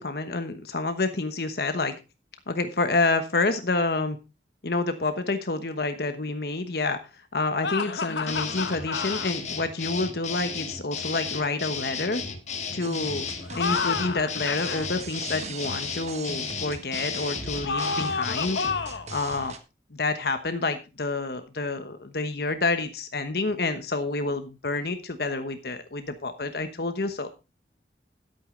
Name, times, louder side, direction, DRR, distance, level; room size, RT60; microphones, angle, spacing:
voice 1, 0.0-1.9 2.5-4.2 4.6-7.0 7.3-12.2 12.7-13.3 13.6-18.6 19.1-19.5 19.9-27.3, left 3 dB, 60° left, 8 dB, 1.1 m, -28 dB
sound 1, 7.6-9.3 13.4-14.9 17.6-19.1, left 5 dB, 85° left, 0.9 m, -30 dB
sound 2, 8.3-18.8, left 6 dB, 40° left, 1.6 m, -34 dB
sound 3, 12.8-19.6, right 3 dB, 40° right, 1.2 m, -40 dB
12.0 x 8.5 x 3.8 m, 0.28 s
head